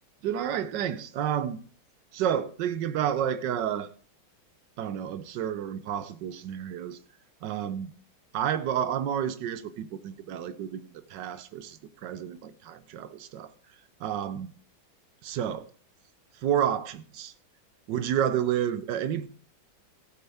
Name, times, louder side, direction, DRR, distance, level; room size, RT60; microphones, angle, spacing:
voice 1, 0.2-1.6 2.1-3.9 4.8-7.0 7.4-7.9 8.3-13.5 14.0-14.5 15.2-15.7 16.4-17.3 17.9-19.3, right 9 dB, 70° right, 1.2 m, -30 dB
14.5 x 8.4 x 3.4 m
omnidirectional pair, 2.2 m